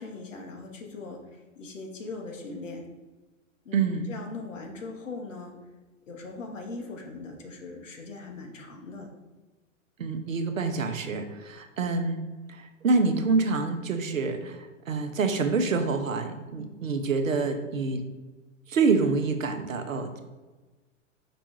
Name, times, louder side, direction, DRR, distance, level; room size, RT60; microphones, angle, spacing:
voice 1, 0.0-2.9 3.6-5.5 6.1-9.1, left 3 dB, 70° left, 2 dB, 1.0 m, -40 dB
voice 2, 3.7-4.2 10.0-12.2 12.5-18.0 18.7-20.2, right 4 dB, 80° right, 6 dB, 0.7 m, -27 dB
5.1 x 2.3 x 4.3 m, 1.2 s
figure-of-eight pair, 105°, 39 cm